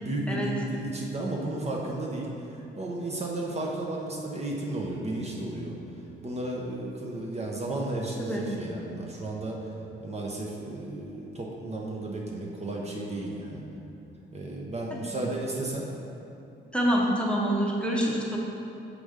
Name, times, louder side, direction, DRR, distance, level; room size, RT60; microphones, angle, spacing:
voice 1, 0.0-5.8 6.2-9.7 10.0-13.6 14.3-15.9, right 2 dB, 35° right, -2 dB, 0.9 m, -33 dB
voice 2, 16.7-18.4, equal, 5° left, -3 dB, 0.9 m, -26 dB
6.6 x 4.8 x 3.6 m, 2.8 s
cardioid pair, 90°, 20 cm